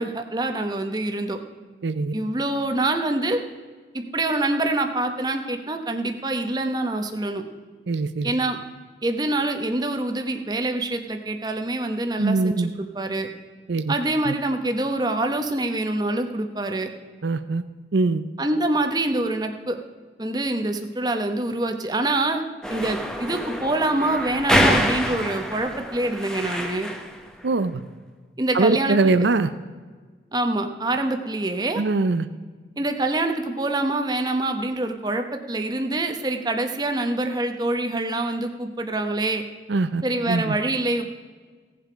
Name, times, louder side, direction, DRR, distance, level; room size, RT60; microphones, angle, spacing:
voice 1, 0.0-1.4 2.1-3.4 3.9-7.4 8.2-8.6 9.0-13.3 13.9-16.9 18.4-19.8 20.2-22.4 22.7-26.9 28.4-29.0 30.3-31.8 32.8-39.4 40.0-41.0, right 2 dB, 20° right, 5 dB, 0.9 m, -25 dB
voice 2, 1.8-2.1 7.9-8.3 12.2-12.7 13.7-13.9 14.3-14.4 17.2-17.6 17.9-18.2 27.4-27.8 28.5-29.5 31.8-32.3 39.7-40.0 40.3-40.5, right 3 dB, 80° right, 11 dB, 0.6 m, -22 dB
sound 1, 22.6-27.2, equal, 5° left, 0.9 m, -25 dB
17.0 x 7.6 x 5.1 m, 1.4 s
head